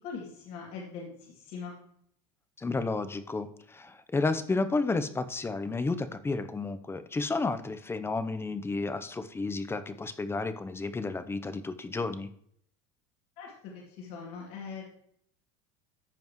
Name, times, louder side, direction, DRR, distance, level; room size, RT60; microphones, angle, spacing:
voice 1, 0.0-1.8 13.4-14.8, left 5 dB, 65° left, -2 dB, 2.7 m, -41 dB
voice 2, 2.6-12.3, left 3 dB, 15° left, 11 dB, 0.8 m, -32 dB
14.0 x 5.2 x 3.1 m, 0.65 s
supercardioid pair, 115°, 17 cm